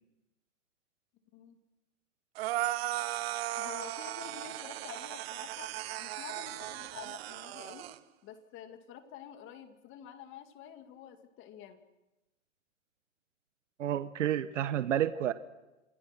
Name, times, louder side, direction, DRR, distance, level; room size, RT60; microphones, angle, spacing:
sound 1, 2.4-8.0, right 15 dB, 55° right, 1.2 m, -37 dB
voice 1, 3.5-5.7 6.0-7.9 8.2-11.8, left 9 dB, 30° left, 8 dB, 2.4 m, -48 dB
voice 2, 13.8-15.3, right 11 dB, 75° right, 13 dB, 1.2 m, -30 dB
28.0 x 21.0 x 6.1 m, 1.0 s
hypercardioid pair, 125°, 37 cm